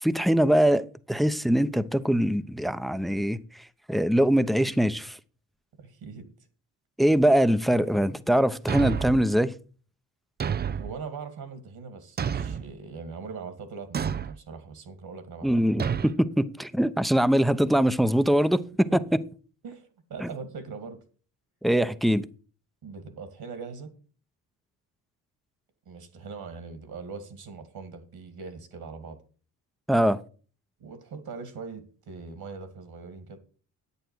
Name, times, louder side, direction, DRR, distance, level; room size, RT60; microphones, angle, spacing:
voice 1, 0.0-3.4 3.9-5.2 7.0-9.5 15.4-18.9 20.2-20.3 21.6-22.2 29.9-30.2, equal, ahead, 0.8 m, -23 dB
voice 2, 5.8-6.3 10.7-15.6 18.9-19.0 19.6-21.0 22.8-23.9 25.9-29.2 30.8-33.4, right 5 dB, 55° right, 2.3 m, -41 dB
Thump thud, 8.7-9.3 10.4-11.0 12.2-12.7 13.9-14.4 15.8-16.1, right 7 dB, 25° right, 0.5 m, -29 dB
10.5 x 8.8 x 4.7 m
hypercardioid pair, 50°, 43 cm